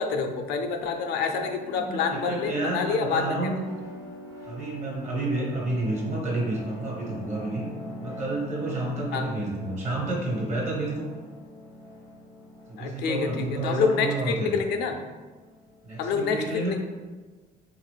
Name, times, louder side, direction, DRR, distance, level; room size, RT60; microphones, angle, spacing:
voice 1, 0.0-3.5 9.1-9.3 12.8-15.0 16.0-16.8, left 5 dB, 80° left, 5 dB, 0.4 m, -27 dB
sound 1, 0.7-16.1, left 1 dB, 20° right, 0.7 m, -43 dB
voice 2, 1.7-3.7 4.4-7.7 8.0-11.2 12.7-14.6 15.8-16.8, right 2 dB, 45° right, -3 dB, 1.3 m, -30 dB
3.5 x 2.4 x 3.2 m, 1.3 s
cardioid pair, 110°, 17 cm